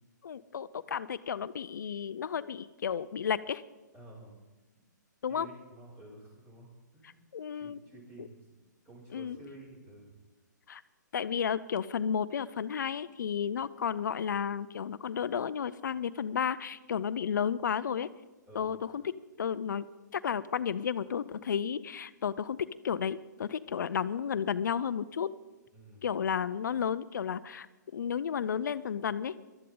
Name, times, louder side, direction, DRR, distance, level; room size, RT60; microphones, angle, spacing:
voice 1, 0.2-3.6 5.2-5.5 7.3-7.8 8.2-8.3 9.1-9.4 10.7-10.8 11.1-18.1 18.5-19.0 19.4-19.9 20.1-25.3 26.0-29.3, left 7 dB, 70° left, 15 dB, 0.5 m, -32 dB
voice 2, 3.9-4.4 4.7-4.8 5.3-7.2 7.5-10.2 18.5-19.0 25.7-26.1, right 1 dB, 25° right, -4 dB, 6.0 m, -51 dB
19.0 x 12.5 x 3.9 m, 1.1 s
hypercardioid pair, 130°, 10 cm